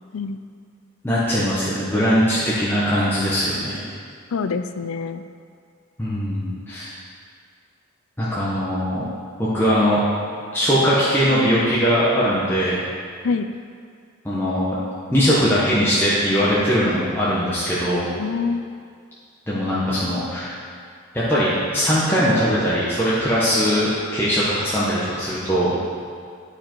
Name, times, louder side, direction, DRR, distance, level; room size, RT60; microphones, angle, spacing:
voice 1, 1.0-3.8 6.0-6.9 8.2-9.0 9.4-10.0 10.5-12.8 14.2-14.8 15.1-18.1 19.5-20.5 21.1-25.7, equal, 10° left, -10 dB, 1.1 m, -20 dB
voice 2, 4.3-5.2 13.2-13.5 18.2-18.7, left 5 dB, 90° left, 10 dB, 0.4 m, -25 dB
11.5 x 5.0 x 4.5 m, 2.2 s
head